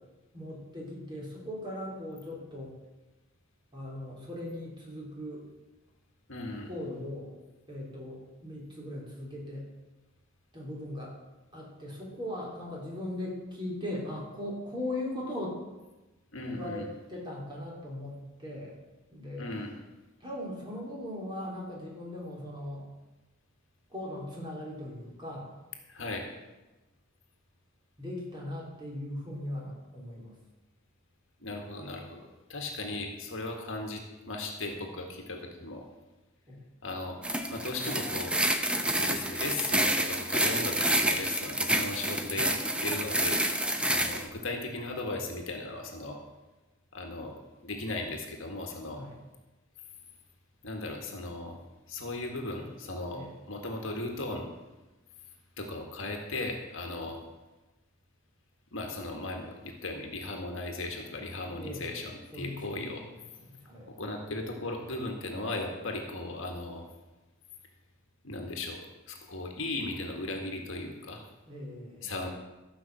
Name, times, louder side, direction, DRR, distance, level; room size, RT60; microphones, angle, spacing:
voice 1, 0.3-2.7 3.7-5.5 6.6-7.3 7.7-9.7 10.5-11.1 11.5-15.6 16.5-18.7 19.1-19.5 20.2-22.9 23.9-25.5 28.0-30.3 36.5-36.7 49.0-49.1 53.1-53.3 57.0-57.1 61.6-62.0 62.3-63.1 63.4-63.9 71.5-72.1, left 1 dB, 20° right, -4 dB, 3.4 m, -39 dB
voice 2, 6.3-6.7 16.3-16.9 19.4-19.7 25.9-26.3 31.4-35.8 36.8-37.2 37.5-38.4 39.0-42.6 42.8-43.4 43.9-46.2 46.9-47.3 47.6-49.0 50.6-51.6 51.9-53.2 53.5-54.5 55.6-57.2 58.7-63.0 63.9-66.9 68.2-71.2 72.0-72.3, left 2 dB, 60° left, 2 dB, 1.7 m, -37 dB
sound 1, 37.2-44.2, right 1 dB, 5° right, 0.6 m, -28 dB
13.5 x 5.8 x 7.5 m, 1.1 s
head